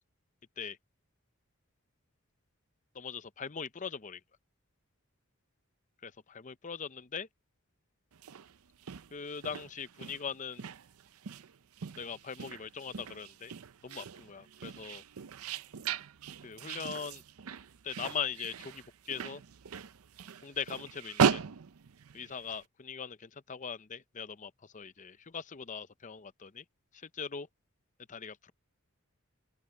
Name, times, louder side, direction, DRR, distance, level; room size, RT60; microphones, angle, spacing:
voice 1, 2.9-4.2 6.0-7.3 9.1-10.6 12.0-13.5 13.8-15.0 16.4-17.2 17.8-19.4 20.4-21.4 22.1-26.6 27.1-27.5 28.1-28.5, left 6 dB, 35° left, 0.6 m, -40 dB
sound 1, 8.1-22.6, right 6 dB, 80° right, 0.6 m, -37 dB
open air
head